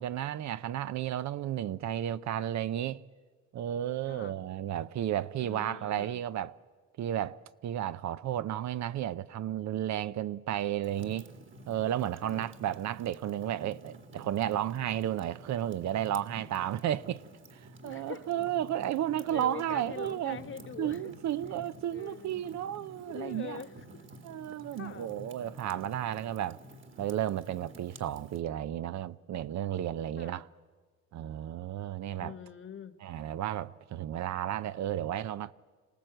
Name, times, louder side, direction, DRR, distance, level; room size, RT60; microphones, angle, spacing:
voice 1, 0.0-3.0 3.5-6.5 7.0-7.4 7.6-11.3 11.7-17.2 17.8-20.4 20.8-23.6 24.2-26.6 27.0-30.5 31.1-32.3 33.0-35.5, right 11 dB, 65° right, 0.6 m, -33 dB
voice 2, 4.1-4.4 5.4-6.2 12.2-12.5 17.8-18.3 19.3-21.0 21.9-22.4 23.1-24.1 24.7-25.1 30.2-30.5 32.2-33.0, left 7 dB, 40° left, 1.2 m, -44 dB
Fire, 10.8-28.4, right 1 dB, 40° right, 1.8 m, -50 dB
26.0 x 17.5 x 7.8 m
cardioid pair, 90°, 30 cm